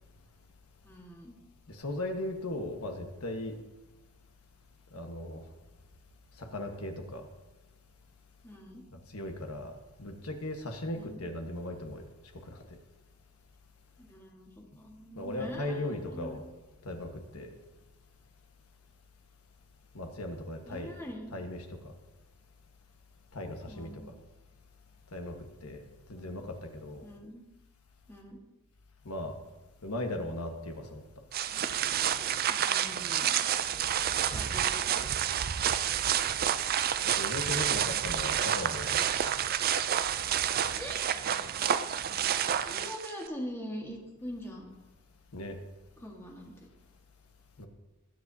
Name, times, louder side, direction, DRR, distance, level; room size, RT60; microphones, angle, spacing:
voice 1, 0.8-1.3 8.4-8.8 10.9-11.2 14.0-16.5 20.7-21.3 23.7-24.1 26.1-26.4 27.0-27.4 28.1-28.4 32.5-33.6 34.3-35.0 40.8-41.0 42.6-44.7 46.0-46.5, equal, 10° left, -1 dB, 1.7 m, -43 dB
voice 2, 1.7-3.5 4.9-5.4 6.4-7.2 9.1-9.7 10.0-12.1 12.5-12.6 15.1-16.4 16.8-17.5 19.9-20.9 21.3-21.6 23.3-24.1 25.1-25.3 25.6-25.8 26.1-27.1 29.0-29.4 29.8-31.0 37.1-39.0 45.3-45.6 47.6-47.7, left 1 dB, 80° left, 4 dB, 1.4 m, -37 dB
sound 1, 31.3-43.3, right 9 dB, 40° right, 0.4 m, -29 dB
20.0 x 7.8 x 2.8 m, 1.1 s
head